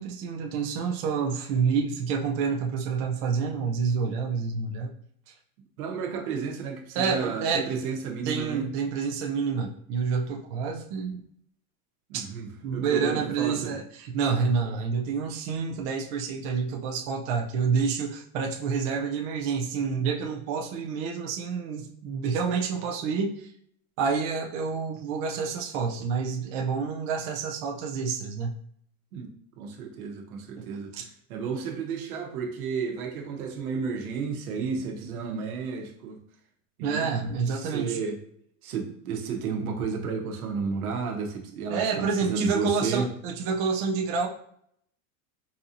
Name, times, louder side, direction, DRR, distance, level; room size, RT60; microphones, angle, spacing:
voice 1, 0.0-4.9 7.0-7.8 8.3-11.2 12.1-12.2 12.6-13.8 14.1-23.5 24.0-28.5 30.6-30.7 30.9-31.0 36.8-38.0 41.7-44.3, right 5 dB, 40° right, 1 dB, 0.4 m, -28 dB
voice 2, 5.8-8.7 12.1-13.7 29.1-29.3 29.6-36.2 36.8-37.1 37.5-38.2 38.6-41.8 42.2-43.1, right 5 dB, 75° right, 2 dB, 1.0 m, -32 dB
4.0 x 2.8 x 2.5 m, 0.66 s
supercardioid pair, 135°, 44 cm